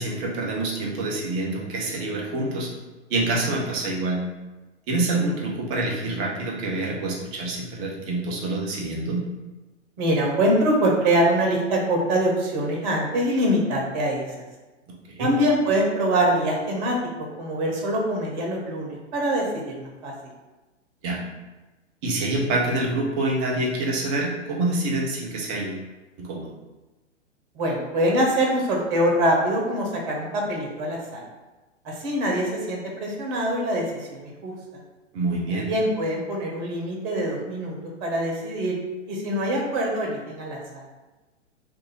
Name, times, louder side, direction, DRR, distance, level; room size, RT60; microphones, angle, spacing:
voice 1, 0.0-2.7 3.1-4.2 4.9-9.2 14.9-15.3 21.0-21.2 22.0-25.8 26.2-26.5 35.1-35.7, right 2 dB, 20° right, -1 dB, 0.4 m, -26 dB
voice 2, 10.0-14.2 15.2-17.0 17.4-20.1 27.5-31.2 31.8-34.5 35.7-38.8 39.1-40.8, right 1 dB, 40° right, -1 dB, 0.9 m, -24 dB
2.6 x 2.6 x 4.0 m, 1.1 s
figure-of-eight pair, 110°, 36 cm